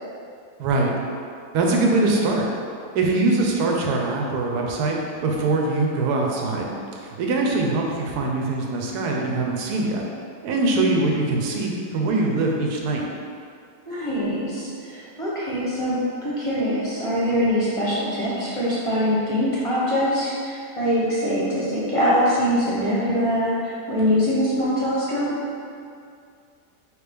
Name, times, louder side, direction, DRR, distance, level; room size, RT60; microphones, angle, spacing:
voice 1, 0.6-0.9 1.5-2.5 2.9-10.0 10.4-13.1, right 2 dB, 80° right, 0 dB, 1.2 m, -23 dB
voice 2, 13.8-25.3, equal, 30° left, -9 dB, 0.7 m, -23 dB
4.6 x 3.3 x 3.4 m, 2.4 s
omnidirectional pair, 1.7 m